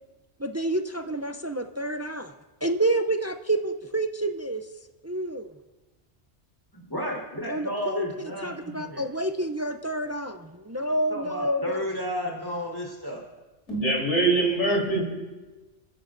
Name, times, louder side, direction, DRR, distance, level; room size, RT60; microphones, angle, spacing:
voice 1, 0.4-2.3 2.6-4.6 5.0-5.5 7.5-8.0 8.4-10.4 10.7-11.8, right 1 dB, 25° right, 7 dB, 0.3 m, -28 dB
voice 2, 6.7-9.1 11.1-13.2, equal, 20° left, -3 dB, 4.2 m, -32 dB
voice 3, 13.7-15.0, right 2 dB, 75° left, -3 dB, 4.1 m, -23 dB
29.5 x 14.0 x 2.6 m, 1.2 s
omnidirectional pair, 1.2 m